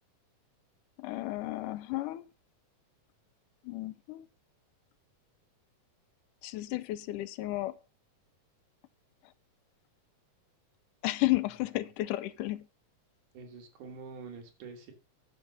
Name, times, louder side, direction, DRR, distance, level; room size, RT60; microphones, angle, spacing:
voice 1, 1.0-2.3 3.7-4.3 6.4-7.7 11.0-12.7, left 18 dB, 80° left, 2.1 m, -33 dB
voice 2, 13.3-14.9, right 5 dB, 70° right, 3.4 m, -46 dB
10.5 x 5.5 x 6.5 m
omnidirectional pair, 3.7 m